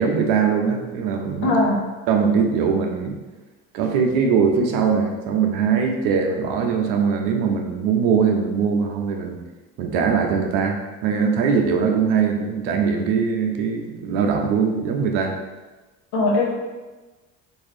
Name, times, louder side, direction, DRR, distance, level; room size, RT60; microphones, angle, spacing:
voice 1, 0.0-1.5 2.1-3.2 3.7-9.4 9.8-15.4, right 6 dB, 75° right, 3 dB, 0.6 m, -21 dB
voice 2, 1.4-1.8 16.1-16.5, left 2 dB, 70° left, -2 dB, 1.0 m, -19 dB
3.6 x 2.6 x 3.2 m, 1.2 s
supercardioid pair, 70°, 38 cm